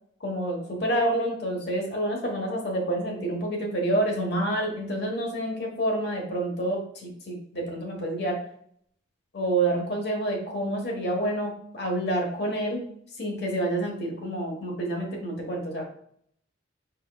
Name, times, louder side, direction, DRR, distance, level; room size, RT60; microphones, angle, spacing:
voice 1, 0.2-8.4 9.3-12.8 13.2-15.8, right 1 dB, 55° left, 0 dB, 1.2 m, -28 dB
5.0 x 4.5 x 2.3 m, 0.65 s
head